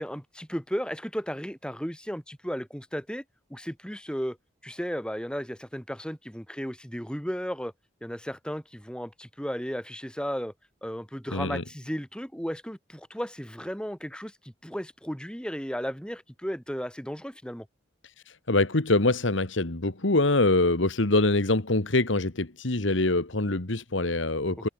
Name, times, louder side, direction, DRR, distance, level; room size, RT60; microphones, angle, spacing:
voice 1, 0.0-3.2 3.5-4.4 4.6-7.7 8.0-10.5 10.8-17.7, equal, 5° left, 4.4 m, -34 dB
voice 2, 11.3-11.6 18.3-24.7, left 2 dB, 75° left, 1.8 m, -24 dB
head